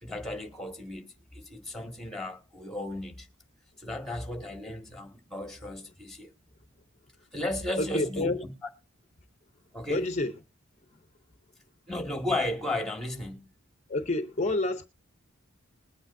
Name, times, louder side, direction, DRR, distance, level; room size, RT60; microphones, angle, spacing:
voice 1, 0.0-3.3 3.8-6.3 7.3-8.3 9.7-10.1 11.9-13.5, left 1 dB, ahead, 1.8 m, -34 dB
voice 2, 7.8-8.4 9.9-10.3 13.9-14.9, left 2 dB, 35° left, 0.7 m, -28 dB
21.0 x 8.9 x 2.6 m
head